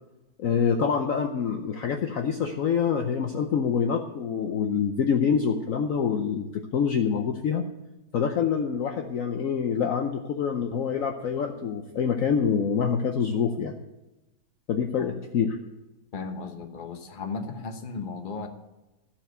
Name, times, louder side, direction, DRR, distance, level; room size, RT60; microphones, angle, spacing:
voice 1, 0.4-7.7 8.1-13.7 14.7-15.6, left 6 dB, 70° left, 5 dB, 0.7 m, -26 dB
voice 2, 16.1-18.5, left 4 dB, 35° left, 6 dB, 0.8 m, -35 dB
14.5 x 4.8 x 7.9 m, 1.0 s
omnidirectional pair, 2.2 m